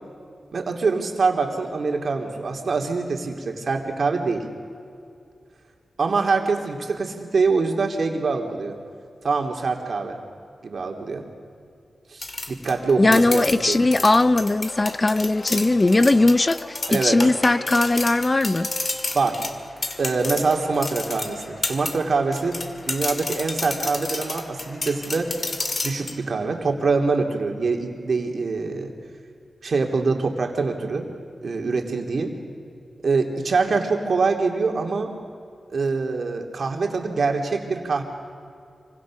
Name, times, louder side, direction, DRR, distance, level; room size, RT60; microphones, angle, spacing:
voice 1, 0.5-4.4 6.0-8.8 9.2-10.2 10.6-11.2 12.1-13.8 16.9-17.2 19.1-19.4 20.0-22.6 22.9-25.3 25.8-28.9 29.6-31.1 31.4-32.3 33.0-35.1 35.7-38.0, right 4 dB, 65° right, 3 dB, 2.9 m, -24 dB
sound 1, 12.2-22.0 22.3-26.1, left 3 dB, 45° left, 2.2 m, -30 dB
sound 2, 12.7-26.9, left 1 dB, 80° left, 6.8 m, -43 dB
voice 2, 13.0-18.7, left 2 dB, 30° left, 14 dB, 0.6 m, -19 dB
26.0 x 24.5 x 6.4 m, 2.4 s
cardioid pair, 75°, 0 cm